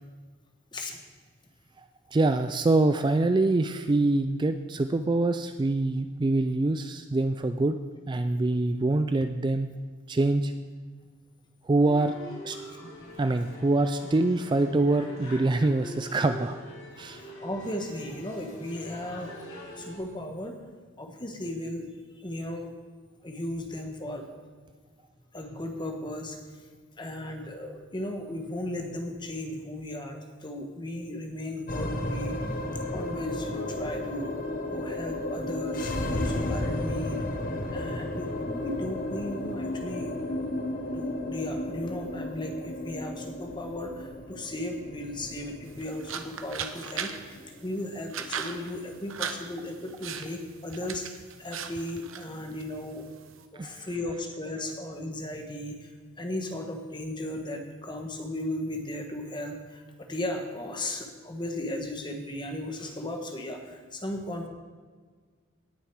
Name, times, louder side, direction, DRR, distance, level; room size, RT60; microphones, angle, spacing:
voice 1, 2.1-7.8 8.1-9.7 10.1-10.5 11.7-12.1 12.4-12.6 13.2-16.6 17.0-17.2 53.6-53.9, right 2 dB, 20° right, 9 dB, 0.3 m, -25 dB
sound 1, 11.8-20.0, equal, 90° left, 4.2 m, -43 dB
voice 2, 17.1-19.3 19.8-20.6 21.0-22.7 23.2-24.3 25.3-26.7 27.0-32.5 32.9-34.4 34.7-40.2 40.9-53.0 53.5-64.5, left 1 dB, 25° left, 4 dB, 1.3 m, -36 dB
sound 2, 31.7-50.2, left 1 dB, 45° left, 1.0 m, -34 dB
sound 3, 45.6-53.5, right 7 dB, 80° right, 0.9 m, -39 dB
18.0 x 6.8 x 4.7 m, 1.5 s
head